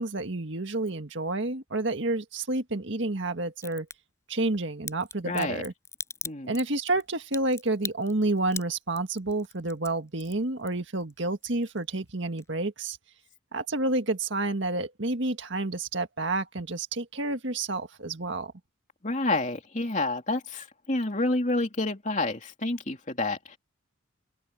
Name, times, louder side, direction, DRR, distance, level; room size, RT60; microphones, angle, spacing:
voice 1, 0.0-3.9 4.3-5.7 6.5-13.0 13.5-18.5, right 2 dB, 65° right, 1.8 m, -29 dB
Crack, 3.6-4.0 4.9-11.1 11.4-12.1 12.4-12.5, left 5 dB, 15° left, 6.3 m, -39 dB
voice 2, 5.2-5.6 6.2-6.5 19.0-23.6, left 2 dB, 35° left, 2.9 m, -29 dB
head